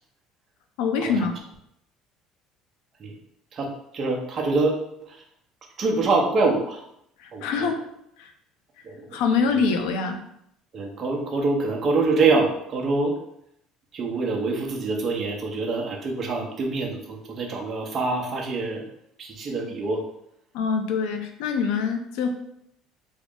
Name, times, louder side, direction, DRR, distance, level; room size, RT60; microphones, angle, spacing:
voice 1, 0.8-1.4 7.2-7.8 8.2-8.3 9.1-10.2 20.5-22.3, left 5 dB, 85° left, 5 dB, 0.5 m, -24 dB
voice 2, 3.5-4.7 5.0-5.2 5.8-6.8 7.3-7.7 8.8-9.2 10.7-13.2 13.9-18.9 19.2-20.0, right 3 dB, 30° right, 0 dB, 0.6 m, -25 dB
3.6 x 2.0 x 3.6 m, 0.75 s
cardioid pair, 160°, 0 cm